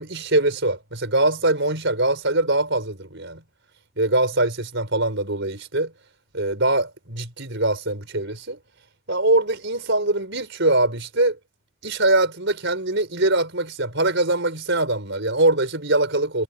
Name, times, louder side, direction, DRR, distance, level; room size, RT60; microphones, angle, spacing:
voice 1, 0.0-3.4 4.0-5.9 6.3-8.6 9.1-11.4 11.8-16.4, right 2 dB, 55° right, 5.9 m, -22 dB
head